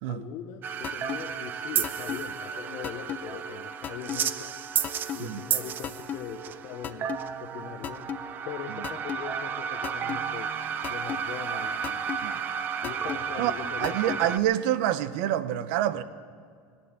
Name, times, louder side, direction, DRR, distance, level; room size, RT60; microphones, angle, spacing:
voice 1, 0.0-4.6 5.1-7.1 7.4-8.1 8.5-10.5 10.9-12.2 12.8-14.4, left 11 dB, 55° left, 0.8 m, -41 dB
sound 1, 0.6-14.4, right 8 dB, 30° right, 0.5 m, -33 dB
sound 2, 0.8-1.2 1.8-2.2 2.8-3.2 3.8-4.2 4.8-5.2 5.8-6.2 6.8-7.2 7.8-8.2 8.8-9.2 9.8-10.2 10.8-11.2 11.8-12.2 12.8-13.2 13.8-14.2, left 10 dB, 30° left, 0.5 m, -33 dB
voice 2, 13.8-16.0, right 12 dB, 70° right, 0.8 m, -27 dB
19.0 x 8.5 x 8.6 m
cardioid pair, 160°, 6 cm